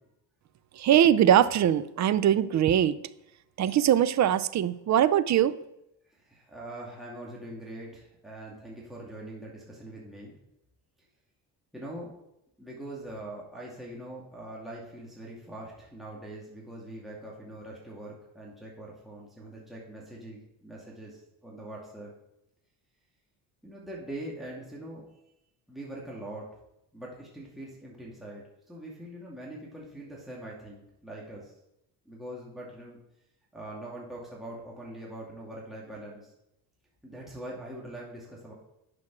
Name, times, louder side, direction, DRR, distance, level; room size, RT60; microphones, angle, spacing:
voice 1, 0.8-3.0 3.6-5.6, right 10 dB, 45° right, 0.6 m, -22 dB
voice 2, 6.1-10.3 11.7-12.1 12.6-22.1 23.6-25.1 25.7-26.5 26.9-31.5 32.0-33.0 33.5-36.3 37.0-38.5, right 1 dB, ahead, 2.3 m, -42 dB
9.7 x 6.2 x 6.1 m
cardioid pair, 120°, 41 cm